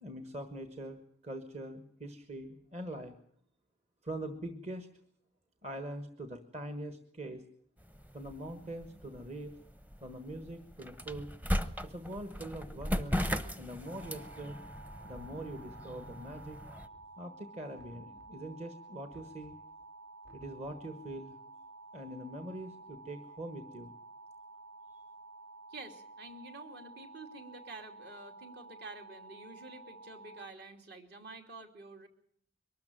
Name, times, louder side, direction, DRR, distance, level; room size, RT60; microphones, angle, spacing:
voice 1, 0.0-3.2 4.0-4.9 5.6-7.4 8.1-9.5 10.0-11.3 11.8-13.2 13.6-14.6 15.0-16.6 17.2-19.6 20.3-21.4 21.9-23.9, right 1 dB, 35° right, 8 dB, 1.4 m, -43 dB
sound 1, 7.8-16.9, equal, 10° right, 0.8 m, -38 dB
sound 2, 13.8-30.5, right 3 dB, 90° right, 1.0 m, -52 dB
Knock, 16.6-17.3 17.8-18.6 19.1-19.7 20.2-21.0, left 1 dB, 75° right, 4.8 m, -61 dB
voice 2, 25.7-32.1, right 2 dB, 55° right, 5 dB, 2.8 m, -49 dB
23.0 x 13.0 x 9.2 m, 0.66 s
head